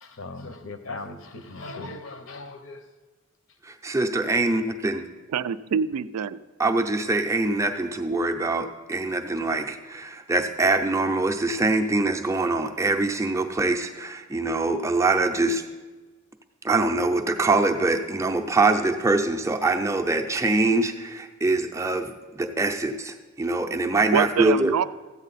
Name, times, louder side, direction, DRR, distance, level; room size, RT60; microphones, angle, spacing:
voice 1, 0.0-2.9, left 2 dB, 60° left, 9 dB, 0.8 m, -38 dB
voice 2, 3.6-5.0 6.6-15.6 16.6-24.7, right 2 dB, 15° right, 5 dB, 0.5 m, -24 dB
voice 3, 5.3-6.4 24.1-24.9, right 7 dB, 85° right, 14 dB, 0.3 m, -25 dB
14.0 x 8.3 x 4.1 m, 1.3 s
head